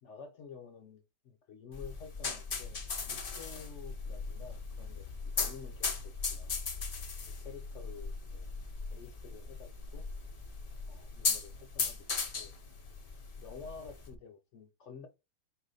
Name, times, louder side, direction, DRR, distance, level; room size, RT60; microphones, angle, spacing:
voice 1, 0.0-6.5 7.3-8.5 8.9-10.1 10.9-12.5 13.4-15.1, left 5 dB, 65° left, 0.9 m, -50 dB
sound 1, 1.7-14.1, left 4 dB, 45° left, 0.4 m, -38 dB
4.2 x 2.5 x 4.0 m
omnidirectional pair, 1.5 m